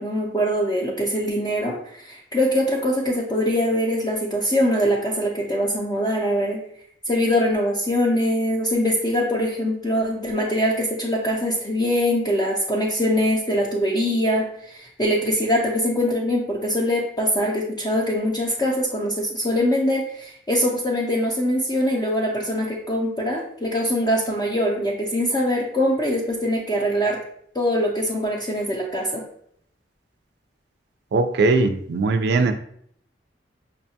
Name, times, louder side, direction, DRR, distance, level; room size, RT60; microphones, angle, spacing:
voice 1, 0.0-6.6 7.1-27.2 27.5-29.2, equal, 25° left, -4 dB, 0.5 m, -23 dB
voice 2, 31.1-32.5, right 3 dB, 65° right, 8 dB, 0.4 m, -20 dB
5.4 x 2.2 x 2.7 m, 0.66 s
head